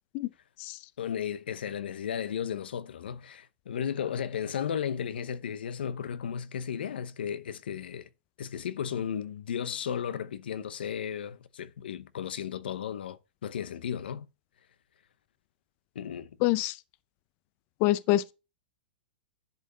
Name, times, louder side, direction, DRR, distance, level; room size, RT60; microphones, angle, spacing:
voice 1, 1.0-8.1 8.4-14.3 15.9-16.4, left 8 dB, 85° left, 0.8 m, -34 dB
voice 2, 16.4-16.8 17.8-18.3, left 16 dB, 40° left, 0.5 m, -25 dB
10.5 x 5.4 x 4.0 m
hypercardioid pair, 145°, 5 cm